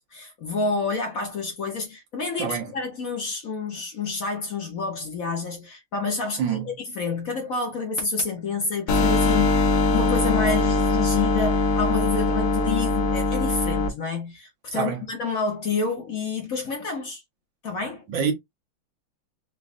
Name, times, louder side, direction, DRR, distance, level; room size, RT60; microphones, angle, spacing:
voice 1, 0.0-17.2 17.6-18.0, left 4 dB, 50° left, 1.2 m, -29 dB
voice 2, 2.4-2.7 6.4-6.7 14.7-15.0 18.1-18.3, right 7 dB, 70° right, 1.6 m, -26 dB
sound 1, 8.9-13.9, left 3 dB, 90° left, 1.7 m, -21 dB
5.0 x 2.5 x 2.5 m
omnidirectional pair, 2.2 m